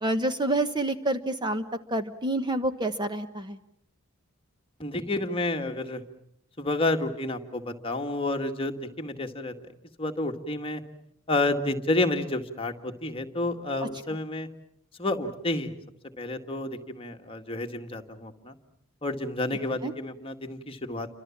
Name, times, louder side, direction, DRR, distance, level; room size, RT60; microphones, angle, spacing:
voice 1, 0.0-1.6 1.9-3.6 19.8-19.9, right 1 dB, 20° right, 9 dB, 1.0 m, -28 dB
voice 2, 4.8-6.0 6.6-9.5 10.0-10.8 11.3-14.5 15.0-15.8 16.2-18.5 19.0-21.1, left 2 dB, 25° left, 4 dB, 1.9 m, -30 dB
30.0 x 25.5 x 7.3 m, 0.74 s
head